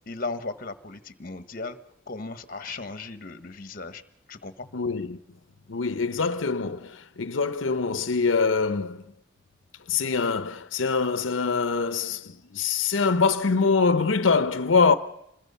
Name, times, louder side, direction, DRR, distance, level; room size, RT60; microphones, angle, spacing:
voice 1, 0.1-1.8 2.1-4.0 4.3-4.7, left 3 dB, 50° left, 1.2 m, -36 dB
voice 2, 4.7-5.2 5.7-9.1 9.9-15.0, left 4 dB, 90° left, 0.7 m, -24 dB
27.0 x 21.0 x 5.5 m
head